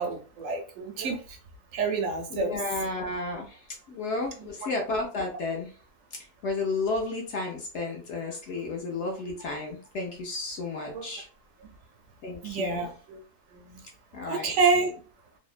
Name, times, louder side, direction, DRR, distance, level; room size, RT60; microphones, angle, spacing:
voice 1, 0.0-1.4 1.7-2.6 10.9-11.1 12.4-13.2 13.5-13.8 14.3-14.9, right 4 dB, 70° right, 4 dB, 0.9 m, -28 dB
voice 2, 2.3-5.7 6.4-11.3 12.2-12.8 14.1-14.5, left 3 dB, 65° left, 1 dB, 0.7 m, -32 dB
2.6 x 2.0 x 2.4 m, 0.39 s
omnidirectional pair, 1.5 m